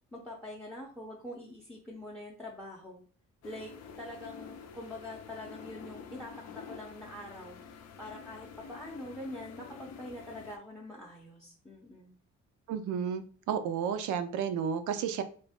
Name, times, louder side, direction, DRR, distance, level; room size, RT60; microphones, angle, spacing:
voice 1, 0.1-3.0 3.4-7.6 8.0-12.1, left 1 dB, ahead, -1 dB, 0.6 m, -44 dB
sound 1, 3.4-10.6, left 6 dB, 60° left, 0.5 m, -48 dB
voice 2, 12.7-15.2, right 7 dB, 80° right, 9 dB, 0.5 m, -32 dB
2.5 x 2.1 x 3.4 m, 0.43 s
cardioid pair, 90°, 30 cm